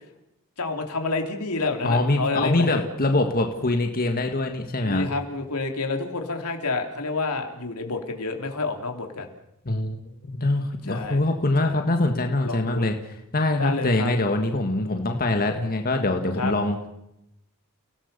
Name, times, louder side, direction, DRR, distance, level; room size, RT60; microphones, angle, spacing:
voice 1, 0.6-2.8 4.9-9.3 10.9-11.3 11.6-11.8 12.4-12.9 13.5-14.1 16.4-16.5, left 3 dB, 90° left, 4 dB, 3.5 m, -29 dB
voice 2, 1.8-5.0 9.7-13.0 13.3-16.9, left 2 dB, 40° left, 4 dB, 2.0 m, -24 dB
30.0 x 18.0 x 6.9 m, 0.85 s
head